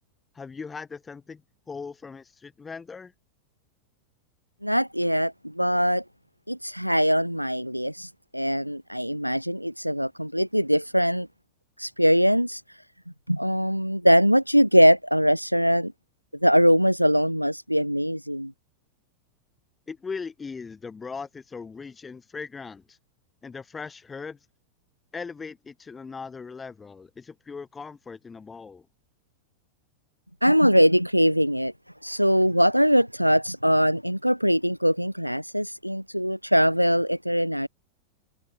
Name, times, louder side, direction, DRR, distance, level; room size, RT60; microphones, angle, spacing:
voice 1, 0.3-1.4 1.7-3.1 19.9-23.0 23.4-24.4 25.1-28.9, left 5 dB, 15° left, 7.4 m, -39 dB
voice 2, 4.6-6.0 6.5-11.3 11.8-12.6 13.3-15.9 16.4-18.5 30.4-31.7 32.0-37.7, equal, 90° right, 0.9 m, -22 dB
figure-of-eight pair, 90°, 0 cm